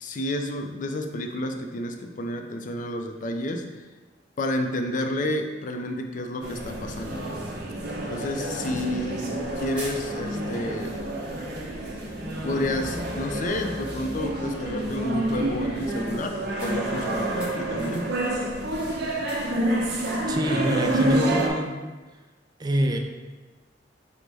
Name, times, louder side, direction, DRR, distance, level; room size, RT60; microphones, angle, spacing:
voice 1, 0.0-3.7 4.4-7.2 8.1-11.0 12.4-18.2, left 1 dB, 45° left, 5 dB, 0.4 m, -30 dB
sound 1, 6.4-21.5, right 1 dB, 60° right, 0.7 m, -29 dB
sound 2, 9.8-10.5 11.2-11.4 11.8-12.6 13.0-13.2 13.4-13.9 16.6-18.4 19.0-20.5, right 1 dB, 5° right, 1.1 m, -46 dB
voice 2, 20.3-21.8 22.6-23.0, right 1 dB, 20° right, 3 dB, 0.4 m, -25 dB
5.3 x 2.1 x 4.7 m, 1.2 s
head